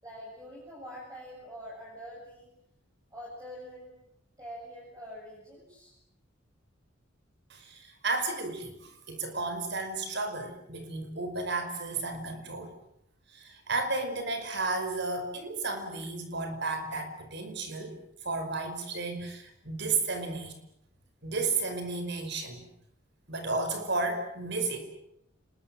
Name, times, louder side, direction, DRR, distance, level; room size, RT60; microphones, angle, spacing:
voice 1, 0.0-2.5 3.1-4.0 4.4-6.0, equal, 15° right, -4 dB, 7.4 m, -45 dB
voice 2, 7.5-12.7 13.3-18.0 18.2-20.6 21.2-22.7 23.3-24.8, right 3 dB, 55° right, 7 dB, 5.2 m, -33 dB
29.5 x 21.0 x 7.7 m, 0.77 s
head